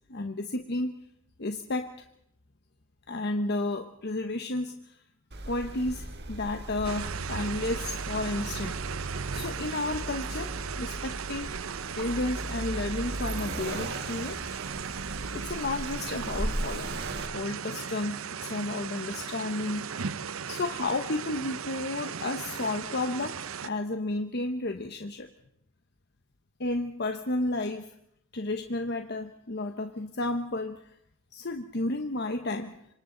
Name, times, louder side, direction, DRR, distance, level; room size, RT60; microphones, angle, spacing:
voice 1, 0.1-0.9 1.4-2.0 3.1-5.0 5.5-8.8 9.3-10.5 10.8-11.5 12.0-14.4 15.3-16.9 17.3-19.8 20.5-25.3 26.6-27.9 28.3-30.8 31.3-32.7, left 2 dB, 55° left, 6 dB, 1.1 m, -32 dB
Accelerating revving vroom, 5.3-17.3, right 1 dB, 55° right, 1.8 m, -37 dB
sound 1, 6.8-23.7, right 6 dB, 85° right, 0.7 m, -37 dB
27.0 x 26.0 x 4.0 m, 0.72 s
head